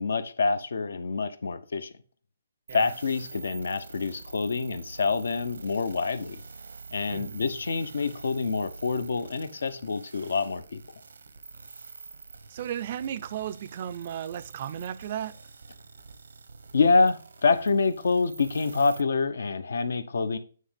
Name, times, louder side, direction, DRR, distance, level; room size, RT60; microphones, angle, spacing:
voice 1, 0.0-1.9 2.7-6.4 6.9-10.8 16.7-20.4, left 4 dB, 80° left, 0.9 m, -26 dB
sound 1, 2.7-19.0, right 4 dB, 90° right, 1.0 m, -46 dB
voice 2, 12.5-15.4, right 10 dB, 35° right, 0.4 m, -35 dB
9.4 x 3.2 x 5.1 m
hypercardioid pair, 165°, 0 cm